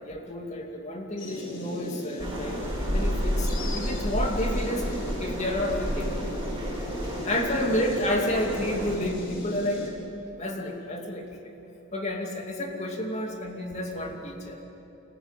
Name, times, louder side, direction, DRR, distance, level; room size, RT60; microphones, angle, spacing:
voice 1, 0.0-4.9 5.2-6.5 7.2-9.9 10.4-11.3 11.9-14.6, left 1 dB, 35° left, 1 dB, 2.6 m, -30 dB
sound 1, 1.2-9.9, equal, 65° left, 4.5 m, -37 dB
sound 2, 2.2-9.0, equal, 25° right, 4.1 m, -31 dB
30.0 x 14.5 x 9.2 m, 3.0 s
head